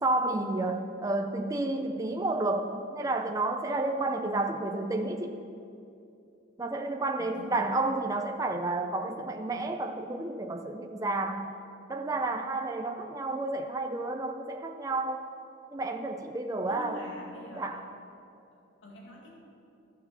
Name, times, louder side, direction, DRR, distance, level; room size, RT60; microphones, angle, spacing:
voice 1, 0.0-5.4 6.6-11.5 11.9-15.3 15.7-17.0 17.6-17.8, right 2 dB, 15° right, 4 dB, 0.4 m, -31 dB
voice 2, 7.2-7.7 16.7-17.9 18.5-19.3, equal, 80° left, -2 dB, 2.2 m, -46 dB
14.5 x 6.9 x 6.8 m, 2.7 s
head